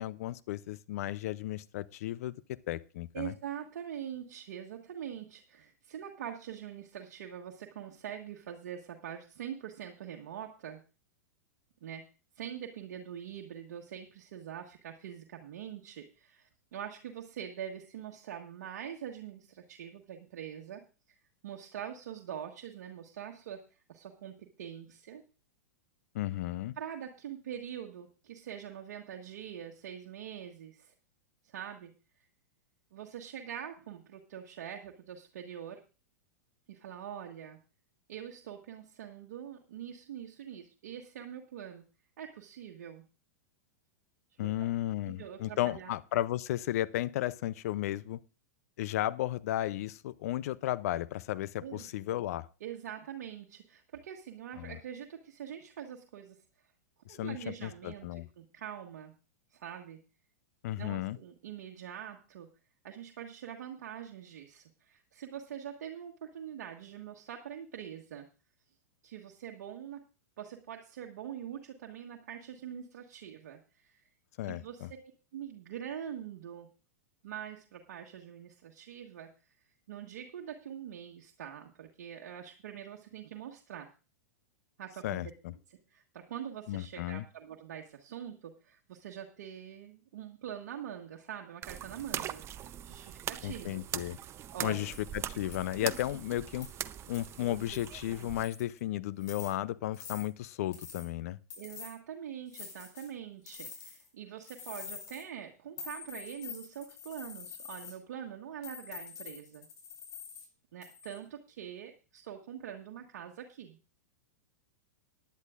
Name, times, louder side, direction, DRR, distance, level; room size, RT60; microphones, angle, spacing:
voice 1, 0.0-2.3 2.7-3.3 26.1-26.7 44.4-48.2 48.8-52.5 54.6-54.8 57.1-58.3 60.6-61.2 74.4-74.9 85.0-85.5 86.7-87.3 93.4-94.2 94.6-96.7 97.1-101.4, left 14 dB, 60° left, 18 dB, 0.5 m, -34 dB
voice 2, 3.1-10.8 11.8-12.1 12.3-20.8 21.1-21.2 21.4-23.6 23.9-25.2 26.8-30.9 31.4-31.9 32.9-35.8 36.7-37.6 38.1-41.8 42.2-43.0 44.4-44.5 45.1-45.9 51.6-51.9 52.6-56.4 57.1-59.1 59.5-60.0 60.8-62.5 62.8-68.3 69.0-70.0 70.4-74.0 74.4-76.7 77.2-79.3 79.9-83.9 84.8-85.3 85.7-92.4 92.8-93.8 94.5-94.9 101.6-109.7 110.7-113.8, right 9 dB, 70° right, 1 dB, 1.4 m, -44 dB
sound 1, 91.6-98.4, right 11 dB, 30° right, 0.6 m, -41 dB
sound 2, 94.9-95.1 95.5-95.6 95.9-96.2 96.6-96.7 97.1-97.4 97.7-98.0 98.4-98.8 99.2-99.5 99.9-100.2 100.7-101.1 101.5-101.9 102.5-103.1 103.5-104.1 104.4-105.2 105.8-107.9 108.6-110.5 110.8-111.2, left 6 dB, 45° left, 6.0 m, -46 dB
18.5 x 10.5 x 2.5 m, 0.32 s
hypercardioid pair, 110°, 9 cm